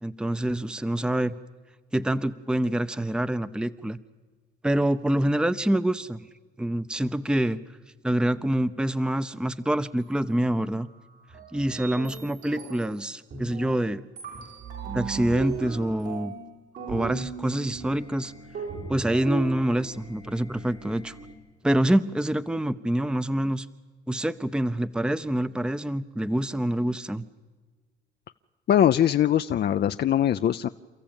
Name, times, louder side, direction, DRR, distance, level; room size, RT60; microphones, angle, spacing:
voice 1, 0.0-1.3 1.9-4.0 4.6-6.2 6.6-7.6 8.0-10.9 11.5-14.0 14.9-16.3 16.9-18.3 18.9-21.1 21.6-23.7 24.1-27.2, right 1 dB, 5° right, 13 dB, 0.7 m, -26 dB
sound 1, 10.0-10.2 10.7-10.8 11.3-12.9 13.3-13.9 14.2-21.3, right 5 dB, 75° right, 5.5 m, -37 dB
voice 2, 28.7-30.7, left 10 dB, 55° left, 9 dB, 0.6 m, -21 dB
28.5 x 14.5 x 9.0 m, 1.4 s
cardioid pair, 90°, 20 cm